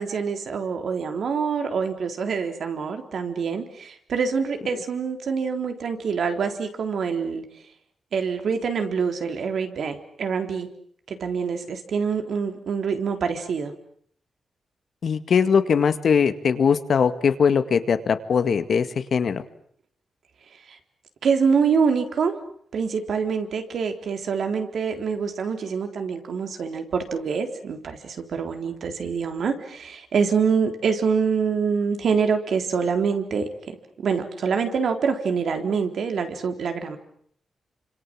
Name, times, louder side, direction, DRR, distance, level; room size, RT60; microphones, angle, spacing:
voice 1, 0.0-7.5 8.1-10.7 11.1-13.7 20.7-20.8 21.2-22.3 22.7-33.8 34.0-37.0, right 6 dB, 70° right, 5 dB, 3.8 m, -25 dB
voice 2, 15.0-19.4, left 6 dB, 60° left, 10 dB, 2.0 m, -21 dB
29.0 x 26.0 x 7.7 m, 0.65 s
wide cardioid pair, 120°, 0 cm